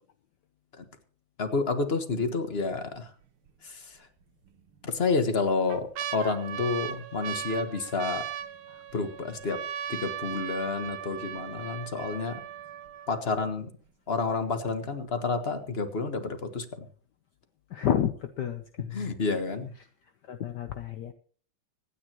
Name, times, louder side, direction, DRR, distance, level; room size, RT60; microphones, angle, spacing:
voice 1, 1.4-3.0 4.8-8.2 8.9-9.6 9.9-12.4 13.1-13.7 14.1-16.8 18.9-19.7, left 4 dB, 35° left, 8 dB, 1.4 m, -29 dB
sound 1, 2.5-3.0 3.5-3.6 4.5-5.0 5.4-13.4 14.1-14.2 14.4-14.9 15.3-15.4, right 10 dB, 85° right, 1.6 m, -38 dB
voice 2, 17.7-19.1 20.3-21.1, left 10 dB, 65° left, 8 dB, 1.3 m, -30 dB
25.0 x 9.8 x 3.0 m, 0.44 s
omnidirectional pair, 2.3 m